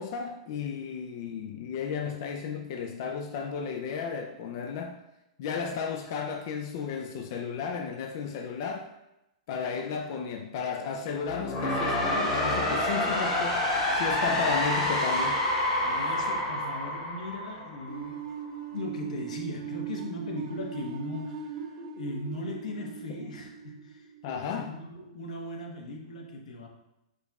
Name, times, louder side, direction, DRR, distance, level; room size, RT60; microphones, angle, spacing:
voice 1, 0.0-5.0 5.4-8.9 9.5-13.6 13.9-15.4 24.2-24.7, left 6 dB, 35° left, 3 dB, 0.3 m, -33 dB
sound 1, 11.2-18.2, left 1 dB, 20° left, 0.9 m, -28 dB
voice 2, 15.8-18.3 18.7-26.7, left 2 dB, 90° left, 1 dB, 1.0 m, -39 dB
sound 2, 17.9-24.7, right 7 dB, 40° right, 0.4 m, -40 dB
5.1 x 2.3 x 4.0 m, 0.89 s
supercardioid pair, 180°, 4 cm